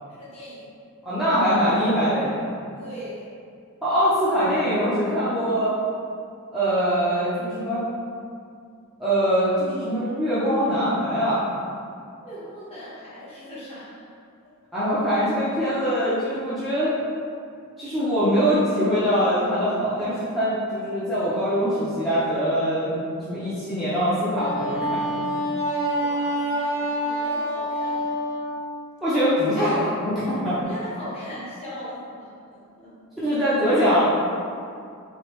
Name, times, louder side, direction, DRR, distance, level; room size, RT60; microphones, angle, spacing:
voice 1, 0.1-0.6 2.7-3.3 12.2-14.1 25.9-28.2 30.6-32.9, equal, 30° left, -10 dB, 1.3 m, -39 dB
voice 2, 1.0-2.5 3.8-5.7 6.5-7.8 9.0-11.5 14.7-16.9 17.8-23.0 23.3-25.3 29.0-30.6 33.2-34.0, equal, ahead, -14 dB, 0.7 m, -23 dB
Wind instrument woodwind instrument, 24.3-28.6, equal, 75° right, 0.8 m, -26 dB
3.4 x 3.4 x 3.1 m, 2.3 s
head